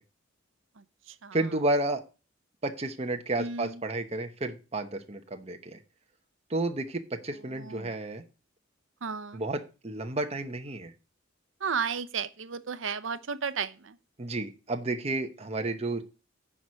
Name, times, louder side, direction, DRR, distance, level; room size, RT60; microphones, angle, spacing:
voice 1, 1.3-2.0 2.6-5.8 6.5-8.2 9.3-10.9 14.2-16.0, right 2 dB, 30° right, 0.9 m, -31 dB
voice 2, 3.4-3.8 7.6-7.9 9.0-9.4 11.6-14.0, right 6 dB, 75° right, 0.8 m, -33 dB
10.0 x 4.7 x 6.3 m
head